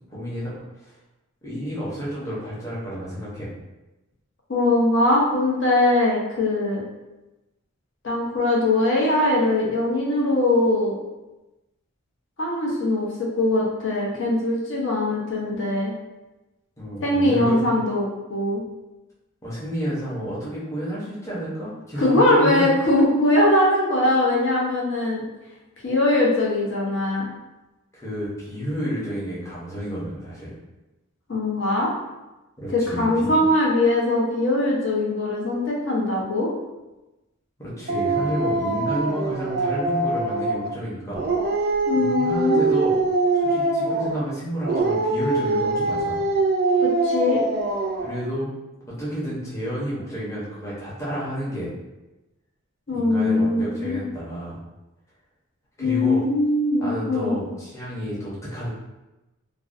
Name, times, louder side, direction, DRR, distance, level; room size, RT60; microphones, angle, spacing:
voice 1, 0.1-0.5 0.8-0.9 1.4-3.5 16.8-17.6 19.4-22.7 27.9-30.5 32.6-33.3 37.6-41.2 41.6-41.7 42.0-42.9 43.3-46.2 48.0-48.5 48.9-51.7 52.9-54.6 55.8-56.2 56.8-58.7, equal, 15° left, -8 dB, 0.7 m, -30 dB
voice 2, 4.5-6.8 8.0-11.0 12.4-15.9 17.0-18.6 22.0-25.2 25.8-27.3 31.3-31.9 32.7-36.5 41.9-42.7 46.8-47.4 52.9-54.0 55.8-57.4, left 2 dB, 60° left, -3 dB, 0.7 m, -21 dB
Dog, 37.9-40.7 41.1-44.2 44.6-48.2, right 3 dB, 45° right, 0.3 m, -23 dB
2.5 x 2.1 x 2.5 m, 1.0 s
head